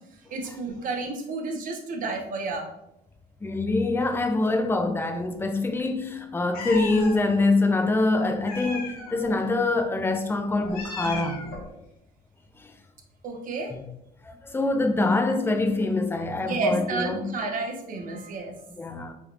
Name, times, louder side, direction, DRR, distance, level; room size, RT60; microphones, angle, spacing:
voice 1, 0.3-2.7 13.2-13.7 16.4-18.5, right 3 dB, 55° right, 0.7 m, -30 dB
voice 2, 3.4-11.4 12.6-12.7 13.7-13.8 14.2-17.3 18.0-18.1 18.8-19.1, left 2 dB, 15° left, 0.4 m, -25 dB
Meow, 6.5-7.2 8.4-9.3 10.6-11.7, left 4 dB, 60° left, 0.9 m, -36 dB
3.3 x 2.9 x 2.4 m
cardioid pair, 110°, 17 cm